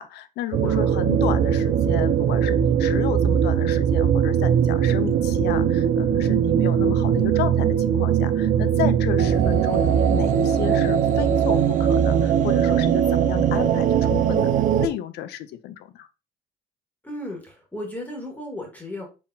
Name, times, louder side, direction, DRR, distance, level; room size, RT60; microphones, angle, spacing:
voice 1, 0.0-14.5 14.8-16.1, left 12 dB, 75° left, 0.5 m, -32 dB
sound 1, 0.5-14.9, right 8 dB, 50° right, 0.5 m, -20 dB
voice 2, 0.6-1.0 2.9-3.1 6.7-6.9 17.0-19.0, left 1 dB, 10° left, 1.7 m, -35 dB
4.4 x 3.5 x 2.7 m
cardioid pair, 110°, 17 cm